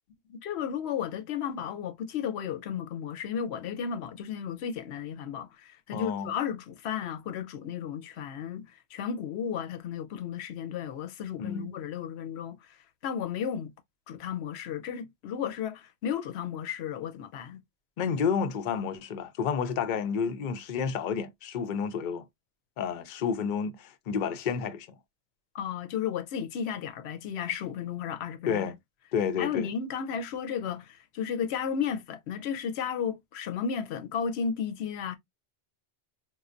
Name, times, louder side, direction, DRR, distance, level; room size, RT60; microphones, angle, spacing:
voice 1, 0.3-8.7 8.9-12.6 13.0-13.7 14.1-17.6 25.5-28.7 29.4-35.2, left 7 dB, 85° left, 0.9 m, -33 dB
voice 2, 5.9-6.3 11.4-11.8 18.0-22.2 22.8-24.9 28.5-28.8 29.1-29.7, left 6 dB, 55° left, 0.6 m, -30 dB
4.2 x 2.2 x 2.4 m
omnidirectional pair, 1.1 m